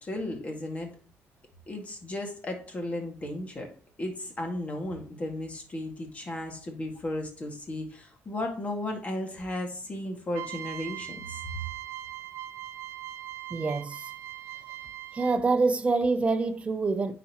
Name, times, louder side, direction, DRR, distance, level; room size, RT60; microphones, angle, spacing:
voice 1, 0.0-0.9 1.7-3.7 4.0-11.4, left 1 dB, 30° left, 1.8 m, -35 dB
sound 1, 10.3-15.6, right 13 dB, 75° right, 0.8 m, -40 dB
voice 2, 13.5-14.1 15.1-17.1, right 3 dB, 25° right, 0.7 m, -26 dB
9.4 x 4.2 x 2.9 m
cardioid pair, 120°, 5 cm